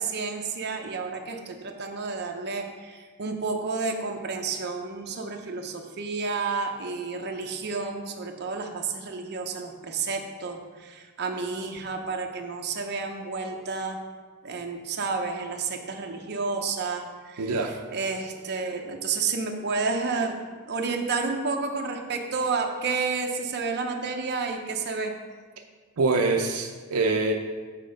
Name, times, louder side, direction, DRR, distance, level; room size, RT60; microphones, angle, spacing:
voice 1, 0.0-14.0 14.4-17.6 17.9-20.4 20.6-25.1, right 4 dB, 50° right, 2 dB, 0.8 m, -30 dB
voice 2, 17.4-17.8 26.0-27.3, right 3 dB, 80° right, 4 dB, 0.5 m, -24 dB
7.5 x 4.2 x 5.1 m, 1.5 s
head